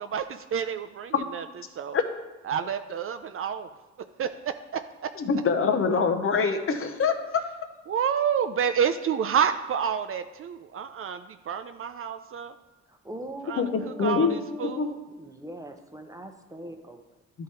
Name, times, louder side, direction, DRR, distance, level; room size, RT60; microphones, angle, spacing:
voice 1, 0.0-1.4 1.8-2.0 2.5-3.7 4.2-4.3 4.7-4.8 7.9-12.5 13.4-15.0, right 7 dB, 45° right, 9 dB, 0.4 m, -29 dB
voice 2, 5.2-7.2 13.6-14.4 14.6-14.9, left 5 dB, 45° left, 6 dB, 0.8 m, -24 dB
voice 3, 13.0-17.0, equal, 10° right, 5 dB, 0.7 m, -41 dB
11.0 x 3.7 x 4.2 m, 1.1 s
cardioid pair, 90°, 30 cm